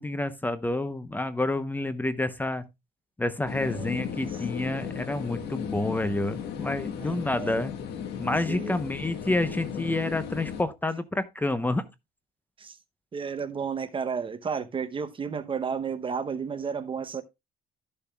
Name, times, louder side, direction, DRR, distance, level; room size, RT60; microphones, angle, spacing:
voice 1, 0.0-2.7 3.2-7.7 8.2-11.8, left 2 dB, 10° left, 0.8 m, -29 dB
sound 1, 3.5-10.6, left 8 dB, 75° left, 1.5 m, -35 dB
voice 2, 7.0-7.5 8.5-8.8 12.6-12.8 13.1-17.2, right 6 dB, 30° right, 0.8 m, -32 dB
13.5 x 6.9 x 2.3 m
cardioid pair, 110°, 17 cm